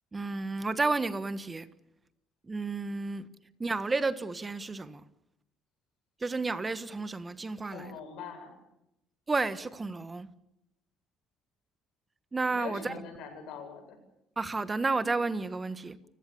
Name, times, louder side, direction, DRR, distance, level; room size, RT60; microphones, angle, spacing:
voice 1, 0.1-1.7 2.4-3.3 3.6-5.0 6.2-7.9 9.3-10.3 12.3-12.9 14.4-16.0, right 3 dB, 20° right, 1.4 m, -31 dB
voice 2, 7.6-8.6 12.5-14.0, left 6 dB, 75° left, 7.9 m, -43 dB
29.0 x 16.5 x 7.1 m
cardioid pair, 130°, 0 cm